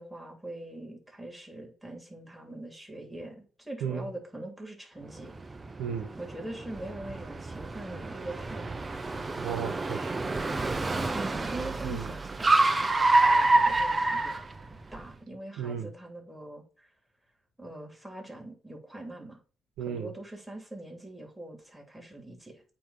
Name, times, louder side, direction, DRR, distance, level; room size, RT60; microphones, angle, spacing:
voice 1, 0.0-5.3 6.2-8.7 11.1-14.4 14.9-16.9 17.6-19.4 19.8-22.6, right 1 dB, 5° right, 2.8 m, -43 dB
Car, 5.2-15.0, right 2 dB, 25° right, 0.7 m, -27 dB
voice 2, 5.8-6.1 9.4-10.1 11.8-12.1 15.6-15.9 19.8-20.1, right 8 dB, 90° right, 1.0 m, -34 dB
8.5 x 3.0 x 5.6 m
cardioid pair, 90°, 0 cm